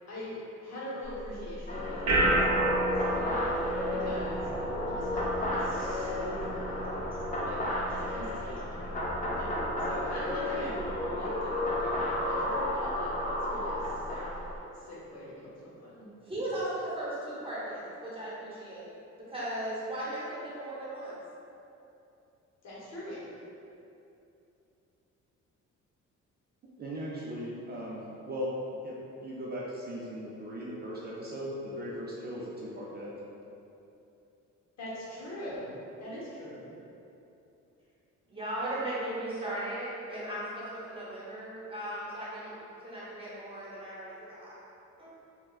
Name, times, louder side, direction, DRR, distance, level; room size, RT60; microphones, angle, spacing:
voice 1, 0.1-3.5 3.9-4.5 4.9-6.9 7.4-7.6 7.9-14.3 14.7-16.1 22.6-23.2 34.8-36.7, left 1 dB, 60° left, -7 dB, 0.9 m, -42 dB
sound 1, 1.0-14.6, right 1 dB, 65° right, 0.7 m, -34 dB
sound 2, 1.7-14.6, left 1 dB, 25° left, 0.5 m, -33 dB
voice 2, 16.2-21.2 38.3-42.5 42.8-44.5 45.0-45.1, right 1 dB, 20° right, -8 dB, 0.9 m, -37 dB
voice 3, 26.8-28.5 28.8-29.0 29.2-33.1, equal, 35° right, -6 dB, 0.4 m, -38 dB
3.4 x 2.1 x 2.3 m, 2.8 s
cardioid pair, 90°, 30 cm